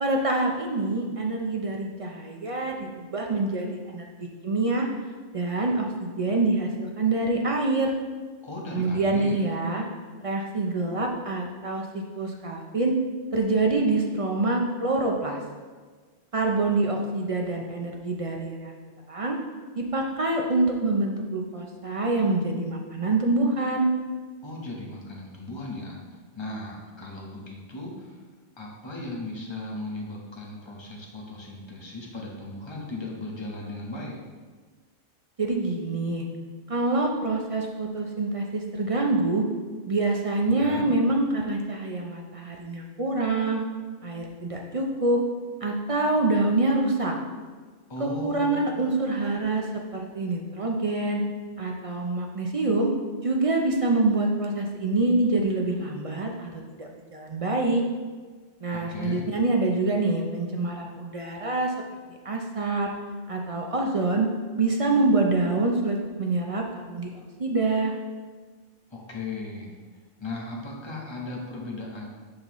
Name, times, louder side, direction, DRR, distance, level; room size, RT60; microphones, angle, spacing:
voice 1, 0.0-4.9 5.3-7.9 8.7-9.8 10.2-12.9 13.3-15.4 16.3-18.7 19.1-19.4 19.8-23.9 35.4-36.2 36.7-39.5 39.9-43.6 44.0-45.2 45.6-47.1 48.0-49.7 49.9-51.2 51.6-52.9 53.2-57.8 58.6-61.7 62.1-62.9 63.3-64.3 64.6-67.9, right 2 dB, 45° right, 1 dB, 0.4 m, -26 dB
voice 2, 8.4-9.4 24.4-26.0 26.3-28.2 28.6-34.2 40.5-40.9 47.9-48.7 58.7-59.3 68.9-69.7 70.2-72.0, left 2 dB, 25° left, -2 dB, 1.0 m, -37 dB
6.6 x 5.3 x 3.0 m, 1.5 s
omnidirectional pair, 1.2 m